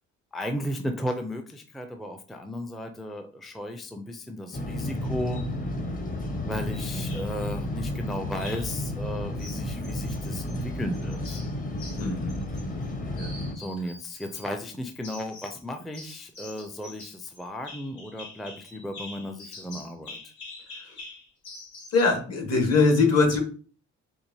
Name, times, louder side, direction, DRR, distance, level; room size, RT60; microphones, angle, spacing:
voice 1, 0.3-5.4 6.5-11.4 13.6-20.2, equal, ahead, 5 dB, 0.4 m, -35 dB
sound 1, 4.5-13.5, left 1 dB, 30° left, 0.8 m, -32 dB
sound 2, 5.2-5.5 6.7-7.5 8.3-8.8 9.4-10.6 10.9-12.9 13.2-14.5 15.0-15.6 15.9-22.0, left 2 dB, 80° left, 1.8 m, -45 dB
voice 2, 12.0-12.4 13.2-13.3 21.9-23.4, left 4 dB, 55° left, 2 dB, 1.4 m, -22 dB
4.5 x 2.5 x 2.7 m, 0.41 s
cardioid pair, 90°, 30 cm